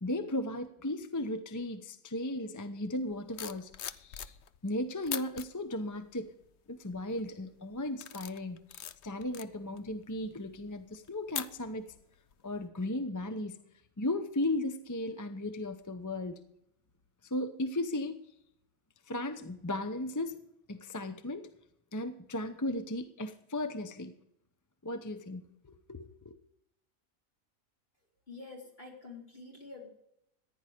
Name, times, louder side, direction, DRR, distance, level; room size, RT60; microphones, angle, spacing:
voice 1, 0.0-4.3 4.6-6.3 6.7-11.9 12.4-13.6 14.0-16.4 17.3-18.2 19.1-20.4 20.7-21.5 21.9-24.1 24.8-26.4, left 1 dB, 20° left, 9 dB, 0.5 m, -36 dB
sound 1, 3.1-4.7 5.0-5.5 6.1-6.4 6.9-7.3 7.7-12.0 12.3-12.6, left 10 dB, 60° left, 0.9 m, -42 dB
voice 2, 28.3-29.9, left 3 dB, 45° left, -2 dB, 4.2 m, -47 dB
14.5 x 10.5 x 5.0 m, 0.77 s
omnidirectional pair, 1.4 m